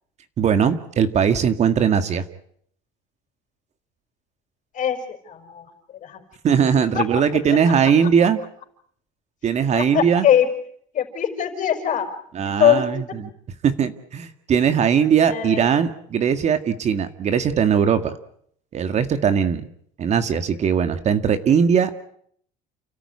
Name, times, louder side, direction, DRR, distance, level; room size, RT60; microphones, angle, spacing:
voice 1, 0.4-2.2 6.4-8.4 9.4-10.3 12.3-13.3 13.6-18.1 18.7-19.6 20.0-21.9, right 7 dB, 40° right, 10 dB, 1.9 m, -20 dB
voice 2, 4.7-5.7 6.0-6.2 6.9-7.0 9.7-10.5 10.9-12.1 12.6-12.9 15.2-15.7, left 10 dB, 45° left, 7 dB, 5.4 m, -21 dB
29.5 x 13.5 x 9.8 m, 0.66 s
cardioid pair, 120°, 18 cm